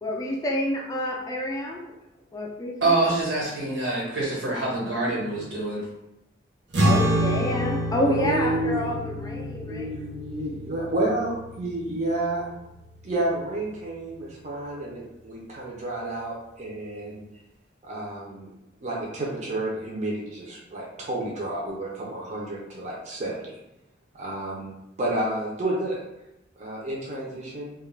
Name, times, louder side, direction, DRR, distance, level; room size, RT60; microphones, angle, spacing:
voice 1, 0.0-1.8 2.3-3.0 6.8-9.9, left 1 dB, 20° left, -1 dB, 0.3 m, -28 dB
voice 2, 2.8-5.9, right 2 dB, 85° right, -6 dB, 1.2 m, -25 dB
sound 1, 6.7-13.4, equal, 70° right, 0.7 m, -28 dB
voice 3, 8.1-12.5 13.0-17.3 17.8-18.5 18.8-23.6 24.1-26.0 26.6-27.7, right 1 dB, 40° right, -4 dB, 0.5 m, -30 dB
2.3 x 2.1 x 3.1 m, 0.88 s
head